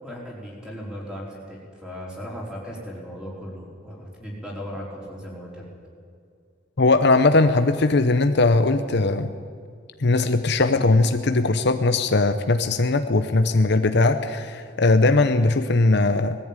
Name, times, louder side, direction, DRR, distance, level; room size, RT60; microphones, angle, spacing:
voice 1, 0.0-5.7, equal, 5° right, -4 dB, 4.5 m, -37 dB
voice 2, 6.8-9.3 10.0-16.4, left 3 dB, 55° left, 8 dB, 0.8 m, -19 dB
20.0 x 14.5 x 9.1 m, 2.2 s
head